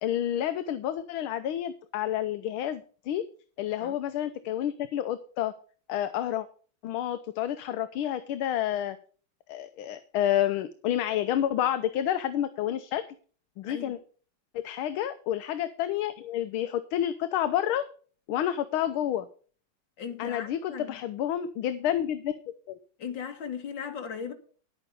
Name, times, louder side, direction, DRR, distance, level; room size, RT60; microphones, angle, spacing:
voice 1, 0.0-3.2 3.6-5.5 5.9-6.5 6.8-9.0 9.5-13.0 13.6-14.0 14.6-17.8 18.3-19.3 20.2-22.4 22.7-22.8, left 11 dB, 75° left, 1.6 m, -29 dB
voice 2, 13.6-14.0 20.0-21.0 23.0-24.3, left 7 dB, 60° left, 2.5 m, -37 dB
11.0 x 8.9 x 5.4 m
omnidirectional pair, 2.4 m